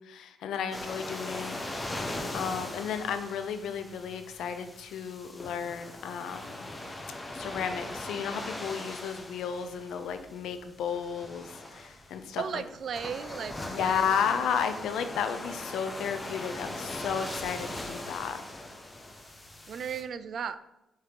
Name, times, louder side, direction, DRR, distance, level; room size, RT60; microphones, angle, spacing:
voice 1, 0.0-1.6 2.3-6.4 7.3-12.6 13.7-18.4, left 7 dB, 80° left, 9 dB, 0.6 m, -33 dB
sound 1, 0.7-20.0, left 1 dB, 15° left, 1.0 m, -40 dB
voice 2, 12.4-14.2 19.7-20.6, right 7 dB, 55° right, 13 dB, 0.4 m, -36 dB
5.6 x 3.6 x 4.7 m, 0.93 s
cardioid pair, 90°, 0 cm